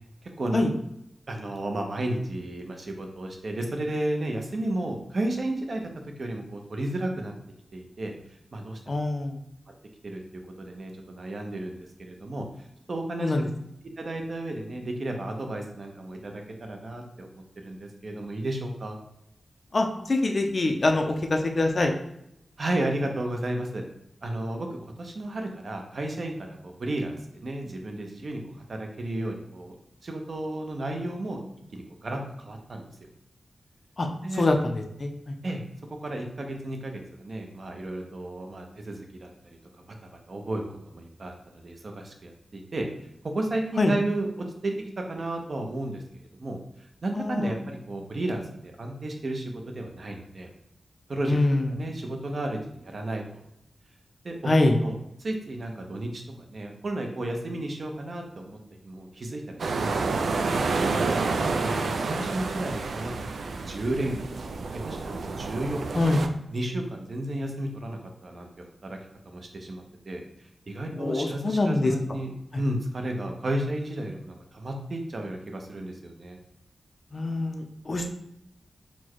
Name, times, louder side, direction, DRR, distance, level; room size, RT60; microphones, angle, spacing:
voice 1, 0.4-0.7 1.3-5.9 6.2-7.3 7.7-8.1 8.5-9.0 10.0-13.4 14.0-17.3 17.6-19.0 22.6-23.8 24.2-29.8 30.0-31.4 31.7-32.8 34.2-34.5 35.4-35.6 35.9-42.9 43.3-46.6 47.0-50.5 51.1-51.4 51.7-53.4 54.2-58.6 58.8-60.1 61.3-64.4 64.9-65.8 66.5-68.5 68.8-69.0 69.3-76.4, right 1 dB, 50° right, 3 dB, 0.7 m, -33 dB
voice 2, 8.9-9.4 13.2-13.5 19.7-21.9 34.0-34.1 34.4-34.7 35.0-35.3 43.8-43.9 47.2-47.6 51.3-51.7 54.5-54.8 61.6-62.1 66.0-66.2 70.9-71.9 77.1-78.1, left 2 dB, 45° left, 3 dB, 0.5 m, -24 dB
sound 1, 59.6-66.3, right 3 dB, 85° right, 0.3 m, -29 dB
4.2 x 2.2 x 4.5 m, 0.79 s
wide cardioid pair, 110°, 0 cm